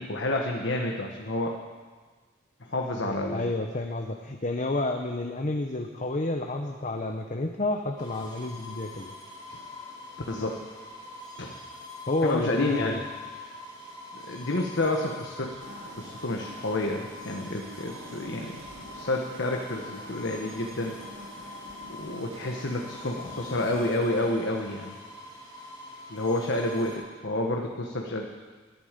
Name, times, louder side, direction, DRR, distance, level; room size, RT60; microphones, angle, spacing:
voice 1, 0.0-1.5 2.7-3.5 10.3-10.6 11.4-11.5 12.2-13.0 14.3-15.6 16.0-18.7 18.9-21.0 22.0-24.9 26.1-28.3, left 2 dB, 65° left, 1 dB, 1.4 m, -29 dB
voice 2, 3.0-9.1 12.1-13.0, left 2 dB, 40° left, 4 dB, 0.9 m, -30 dB
sound 1, 8.0-27.0, left 2 dB, 25° left, 6.4 m, -44 dB
sound 2, 15.6-24.0, right 2 dB, 80° right, 1.8 m, -46 dB
21.0 x 12.5 x 5.2 m, 1.4 s
head